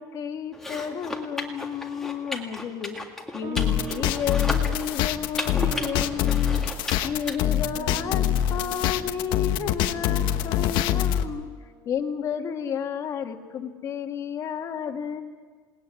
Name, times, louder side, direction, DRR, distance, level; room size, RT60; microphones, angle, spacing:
voice 1, 0.0-3.0 3.3-6.6 7.0-11.5 11.9-15.2, left 8 dB, 35° left, 3 dB, 1.9 m, -31 dB
sound 1, 0.5-7.4, left 1 dB, 5° left, 2.0 m, -35 dB
sound 2, 3.4-12.1, right 4 dB, 50° right, 6.7 m, -42 dB
sound 3, 3.6-11.2, left 10 dB, 60° left, 1.2 m, -24 dB
28.0 x 19.0 x 9.8 m, 1.5 s
cardioid pair, 175°, 9 cm